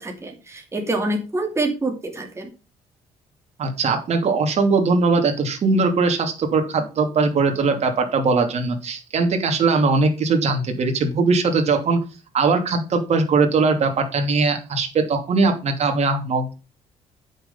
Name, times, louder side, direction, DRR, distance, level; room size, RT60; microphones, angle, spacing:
voice 1, 0.0-2.5, right 2 dB, 20° right, 2 dB, 2.8 m, -26 dB
voice 2, 3.6-12.0 12.3-16.5, right 4 dB, 55° right, 5 dB, 2.8 m, -20 dB
9.1 x 6.7 x 5.6 m, 0.32 s
cardioid pair, 90°, 13 cm